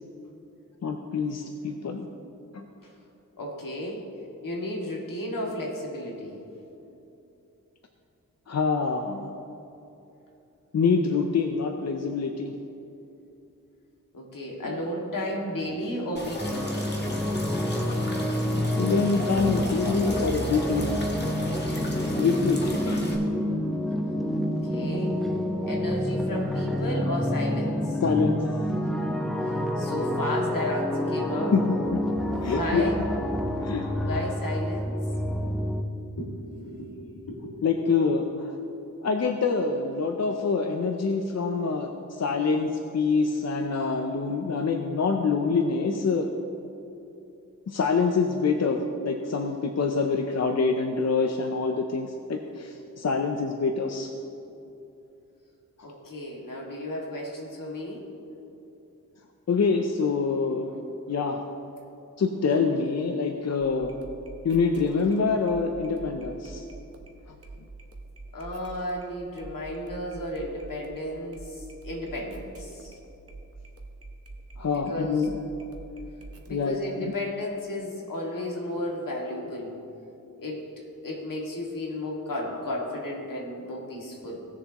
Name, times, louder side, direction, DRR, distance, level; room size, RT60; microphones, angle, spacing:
voice 1, 0.8-2.1 2.5-2.6 8.5-9.3 10.7-12.5 14.6-14.8 18.8-21.0 22.2-23.0 25.7-25.8 28.0-28.5 31.5-32.0 32.4-32.9 33.6-33.9 37.6-38.6 39.0-46.3 47.7-54.1 59.5-60.8 61.1-61.4 62.2-64.0 64.4-66.6 74.6-75.3 76.5-77.1, left 4 dB, 50° left, 4 dB, 0.6 m, -26 dB
voice 2, 3.4-4.1 4.4-6.4 14.1-16.7 24.6-25.2 25.7-28.0 29.8-31.5 32.3-33.0 34.0-34.9 36.2-37.6 55.8-58.1 68.3-73.0 74.9-75.3 76.4-79.8 80.4-80.7 81.0-84.4, left 1 dB, 75° left, -2 dB, 2.1 m, -33 dB
sound 1, 16.2-23.2, left 1 dB, 30° left, 1.6 m, -37 dB
sound 2, 16.4-35.8, left 1 dB, ahead, 0.7 m, -28 dB
sound 3, 63.6-77.0 77.4-77.8 78.2-78.3, right 2 dB, 45° right, 1.2 m, -46 dB
18.0 x 6.9 x 3.0 m, 2.9 s
wide cardioid pair, 85°, 33 cm